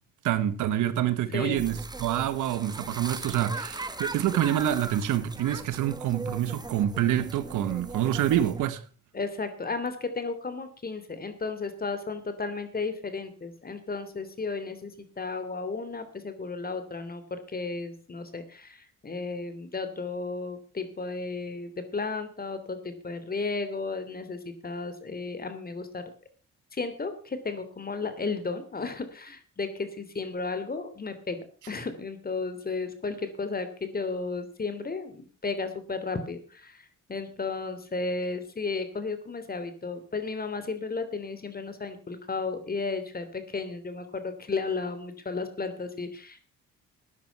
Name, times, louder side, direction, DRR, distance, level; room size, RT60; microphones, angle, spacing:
voice 1, 0.2-8.8, right 11 dB, 80° right, 1.4 m, -27 dB
voice 2, 1.3-1.6 9.1-26.1 26.7-31.4 31.7-46.5, left 4 dB, 30° left, 3.1 m, -34 dB
sound 1, 1.6-8.7, right 2 dB, 15° right, 1.3 m, -39 dB
13.5 x 10.0 x 5.9 m
cardioid pair, 90°, 30 cm